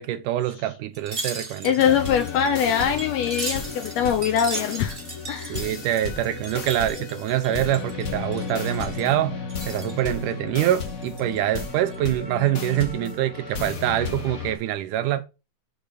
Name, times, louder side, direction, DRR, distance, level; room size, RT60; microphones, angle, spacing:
voice 1, 0.0-1.7 5.5-9.4 9.7-15.2, right 13 dB, 85° right, 2.3 m, -25 dB
Wind chime, 0.9-8.0 8.3-9.1 9.5-10.0 10.5-11.4 11.8-12.0, right 3 dB, 40° right, 0.7 m, -37 dB
voice 2, 1.6-5.0 5.3-5.7, left 8 dB, 75° left, 1.6 m, -23 dB
sound 1, 1.8-14.6, left 5 dB, 60° left, 0.9 m, -33 dB
6.9 x 3.9 x 6.4 m
omnidirectional pair, 3.7 m